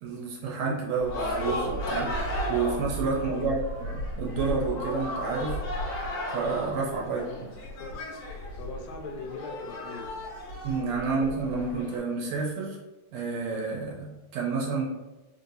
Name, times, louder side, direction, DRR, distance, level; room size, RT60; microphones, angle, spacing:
voice 1, 0.0-5.6 6.3-7.2 10.6-12.8 13.1-14.9, right 4 dB, 75° right, -3 dB, 1.8 m, -30 dB
sound 1, 1.0-12.0, left 1 dB, 65° left, 1.8 m, -34 dB
voice 2, 3.1-3.6 6.8-8.0 8.6-10.2 10.7-11.0, left 3 dB, 80° left, 4 dB, 1.9 m, -41 dB
4.5 x 2.7 x 2.7 m, 1.1 s
omnidirectional pair, 3.3 m